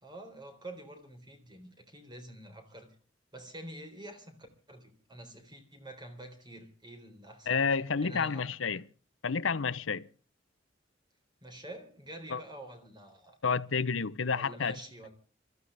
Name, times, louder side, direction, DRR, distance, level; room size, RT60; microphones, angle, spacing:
voice 1, 0.0-3.0 3.3-4.4 4.7-7.6 8.0-8.5 11.4-13.4 14.3-15.1, right 1 dB, 25° right, 4.0 m, -47 dB
voice 2, 7.5-8.8 9.2-10.1 12.3-12.4 13.4-14.8, left 5 dB, 80° left, 0.8 m, -30 dB
26.0 x 14.0 x 3.4 m
head